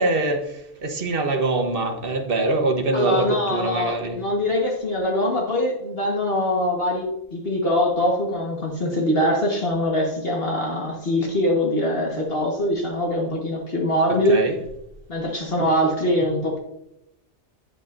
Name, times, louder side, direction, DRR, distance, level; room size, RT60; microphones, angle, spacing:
voice 1, 0.0-4.2 14.1-14.6, right 2 dB, 50° right, 4 dB, 1.3 m, -24 dB
voice 2, 2.9-14.4 15.1-16.6, left 1 dB, 55° left, -1 dB, 1.6 m, -23 dB
9.9 x 8.6 x 2.6 m, 0.82 s
omnidirectional pair, 1.2 m